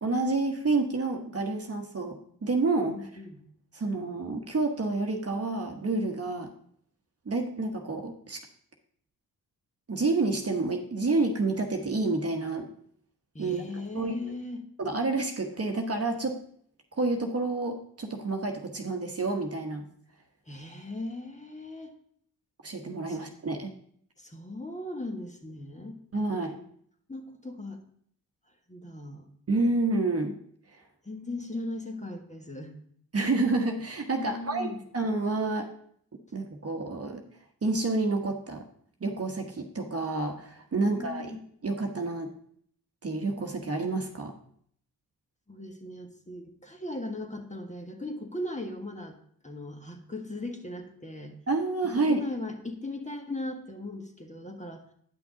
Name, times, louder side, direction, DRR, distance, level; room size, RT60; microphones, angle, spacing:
voice 1, 0.0-2.9 3.7-6.5 7.2-8.4 9.9-12.7 13.4-13.6 13.9-14.1 14.8-16.4 16.9-19.9 22.6-23.7 26.1-26.6 29.5-30.4 33.1-35.7 36.3-37.2 37.6-38.6 39.0-41.3 41.6-42.3 43.0-44.3 51.5-52.2, right 3 dB, 35° right, 3 dB, 1.2 m, -29 dB
voice 2, 2.9-3.4 13.3-14.7 20.5-21.9 23.1-23.2 24.2-26.0 27.1-27.8 28.7-29.2 31.0-32.7 34.2-34.8 40.8-41.4 45.5-49.2 49.4-51.4 51.9-54.8, left 1 dB, 20° left, 3 dB, 1.5 m, -38 dB
9.2 x 5.9 x 3.8 m, 0.63 s
supercardioid pair, 45°, 40 cm